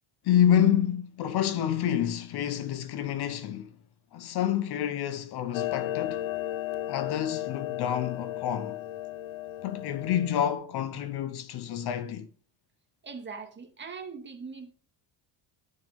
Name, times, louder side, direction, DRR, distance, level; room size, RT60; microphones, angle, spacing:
voice 1, 0.2-3.7 4.1-6.3 6.9-8.8 9.6-12.3, left 10 dB, 55° left, 1.0 m, -28 dB
Clock, 5.5-10.5, left 14 dB, 90° left, 0.7 m, -35 dB
voice 2, 13.0-14.7, right 5 dB, 25° right, 2.1 m, -41 dB
11.0 x 6.7 x 5.3 m
cardioid pair, 170°, 47 cm